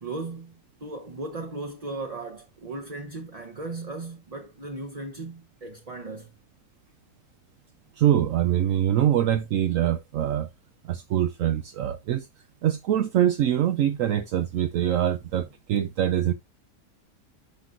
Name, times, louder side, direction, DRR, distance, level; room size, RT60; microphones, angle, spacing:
voice 1, 0.0-6.3, right 2 dB, 30° right, 0.9 m, -37 dB
voice 2, 8.0-10.5 10.8-12.3 12.6-16.3, right 11 dB, 70° right, 1.0 m, -24 dB
10.0 x 5.9 x 2.4 m
omnidirectional pair, 1.5 m